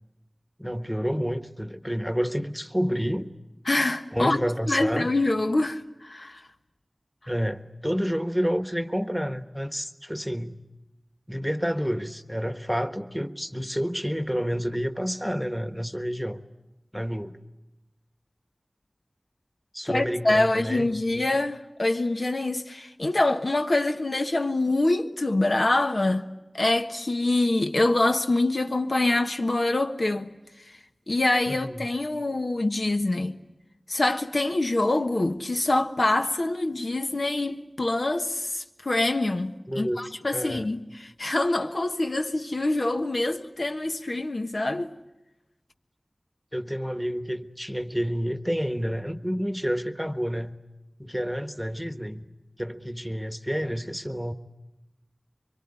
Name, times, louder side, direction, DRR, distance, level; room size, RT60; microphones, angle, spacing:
voice 1, 0.6-3.3 4.1-5.1 7.3-10.6 11.3-16.4 16.9-17.4 19.7-21.2 31.5-31.9 39.7-40.0 40.3-40.7 46.5-50.6 51.0-52.2 52.6-54.3, equal, ahead, 1.3 m, -29 dB
voice 2, 3.7-4.4 4.7-6.4 19.8-26.3 26.5-30.3 31.1-33.4 33.9-44.9, left 2 dB, 70° left, 1.3 m, -25 dB
24.5 x 23.5 x 9.8 m
wide cardioid pair, 50°, 0 cm